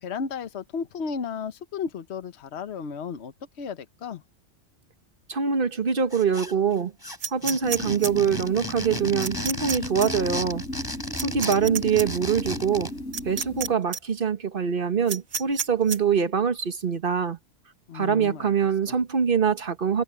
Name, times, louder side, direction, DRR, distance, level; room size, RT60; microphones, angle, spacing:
voice 1, 0.0-4.2 17.9-18.5 18.9-19.0, left 6 dB, 60° left, 1.3 m, -34 dB
voice 2, 5.3-6.9 7.3-10.6 11.2-12.9 13.2-17.4 17.9-20.0, right 7 dB, 45° right, 1.4 m, -24 dB
sound 1, 6.1-6.7 7.0-13.0, equal, 15° left, 7.3 m, -35 dB
sound 2, 7.2-8.1 9.2-9.8 10.0-10.1 11.2-12.0 13.1-13.7 13.9-14.0 15.1-16.0, right 6 dB, 85° right, 1.8 m, -29 dB
sound 3, 7.6-13.7, left 1 dB, 80° left, 3.6 m, -35 dB
omnidirectional pair, 1.3 m